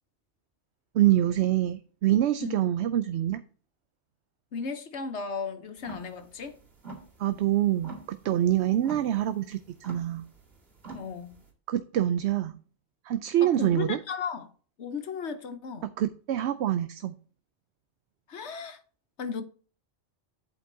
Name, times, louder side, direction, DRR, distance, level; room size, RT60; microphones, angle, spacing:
voice 1, 0.9-3.4 7.2-10.3 11.7-12.6 13.0-14.0 16.0-17.2, right 12 dB, 75° right, 0.8 m, -25 dB
voice 2, 4.5-6.5 10.9-11.4 13.4-14.5 14.8-15.9 18.3-18.8 19.2-19.4, left 5 dB, 75° left, 1.2 m, -35 dB
sound 1, 5.8-11.5, right 3 dB, 60° right, 2.5 m, -46 dB
8.4 x 8.3 x 2.7 m
omnidirectional pair, 1.2 m